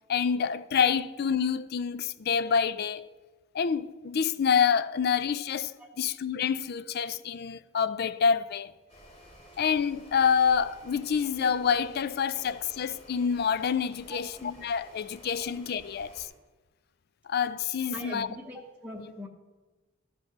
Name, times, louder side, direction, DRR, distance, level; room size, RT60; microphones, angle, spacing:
voice 1, 0.1-3.1 3.5-8.7 9.6-16.3 17.3-18.3, left 7 dB, 50° left, 0.4 m, -27 dB
sound 1, 8.9-16.3, equal, 30° left, 2.7 m, -52 dB
voice 2, 14.1-14.4 15.4-15.5 17.9-19.3, left 1 dB, 5° right, 0.9 m, -42 dB
13.0 x 5.4 x 6.1 m
head